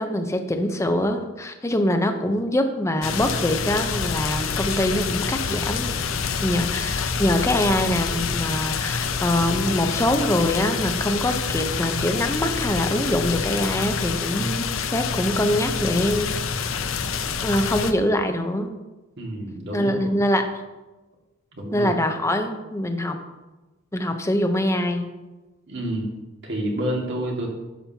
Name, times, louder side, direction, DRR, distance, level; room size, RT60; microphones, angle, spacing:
voice 1, 0.0-6.0 6.4-16.3 17.4-18.7 19.7-20.5 21.7-23.2 23.9-25.1, left 1 dB, 15° left, 6 dB, 0.7 m, -24 dB
sound 1, 3.0-17.9, left 6 dB, 85° left, 0.6 m, -27 dB
voice 2, 19.2-20.1 21.5-21.9 25.7-26.1 26.4-27.5, right 1 dB, 60° right, -1 dB, 2.0 m, -29 dB
11.5 x 7.5 x 2.8 m, 1.1 s
head